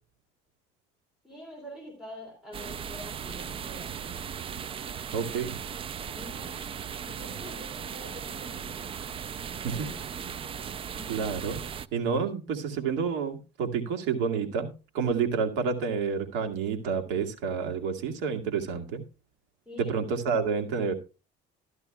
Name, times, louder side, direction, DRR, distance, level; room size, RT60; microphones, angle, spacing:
voice 1, 1.2-4.2 6.1-6.7 7.0-8.9 9.5-10.5 10.8-11.3 19.7-20.0, equal, 5° right, 1 dB, 3.6 m, -46 dB
sound 1, 2.5-11.9, right 7 dB, 30° right, 0.5 m, -37 dB
voice 2, 5.1-5.5 9.6-9.9 11.1-11.6 11.9-14.7 14.9-19.0 19.8-20.9, right 5 dB, 80° right, 4 dB, 2.1 m, -29 dB
13.0 x 12.5 x 2.3 m, 0.31 s
cardioid pair, 130°, 18 cm